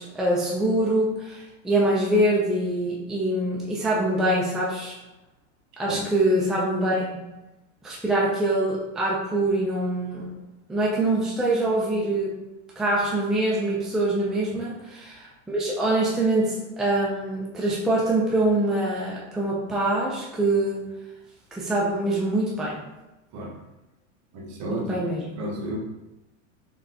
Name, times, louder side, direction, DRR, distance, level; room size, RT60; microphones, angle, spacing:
voice 1, 0.0-5.0 5.8-7.2 7.8-10.3 10.7-12.3 12.8-20.8 21.5-22.8 24.7-25.2, right 1 dB, ahead, -5 dB, 0.6 m, -24 dB
voice 2, 24.3-25.0 25.4-25.8, right 1 dB, 45° right, -1 dB, 1.1 m, -32 dB
3.8 x 3.5 x 2.9 m, 1.0 s
hypercardioid pair, 115°, 38 cm